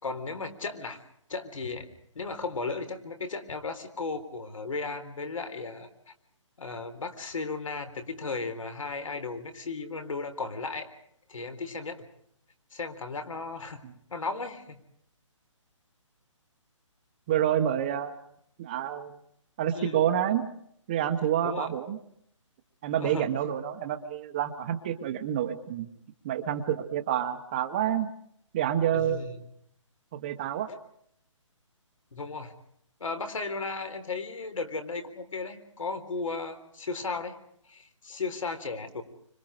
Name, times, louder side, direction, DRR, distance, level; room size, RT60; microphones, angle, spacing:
voice 1, 0.0-1.0 1.3-1.9 2.1-6.1 6.6-10.9 11.3-12.0 12.7-13.8 14.1-14.8 19.7-20.0 21.4-21.7 23.0-23.3 28.9-29.3 32.1-32.6 33.0-37.4 37.7-39.0, left 4 dB, 80° left, 7 dB, 3.9 m, -35 dB
voice 2, 17.3-18.2 18.6-19.1 19.6-20.5 20.9-22.0 22.8-25.9 26.2-28.1 28.5-29.2 30.1-30.7, right 10 dB, 15° right, 7 dB, 0.9 m, -28 dB
25.5 x 25.0 x 4.9 m, 0.70 s
hypercardioid pair, 170°, 17 cm